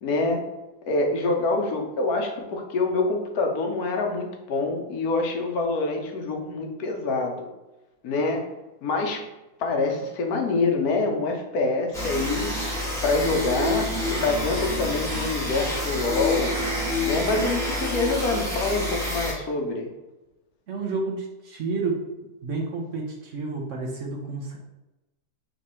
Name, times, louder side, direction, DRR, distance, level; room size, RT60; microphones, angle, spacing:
voice 1, 0.0-0.4 0.9-7.5 8.0-8.4 8.8-9.2 9.6-12.5 13.0-16.5 17.0-19.9, left 3 dB, 75° left, 2 dB, 1.2 m, -26 dB
sound 1, 11.9-19.3, left 1 dB, ahead, 1.1 m, -28 dB
voice 2, 20.7-22.0 22.4-24.6, right 3 dB, 60° right, 0 dB, 0.9 m, -30 dB
3.4 x 3.0 x 4.2 m, 1.0 s
omnidirectional pair, 1.6 m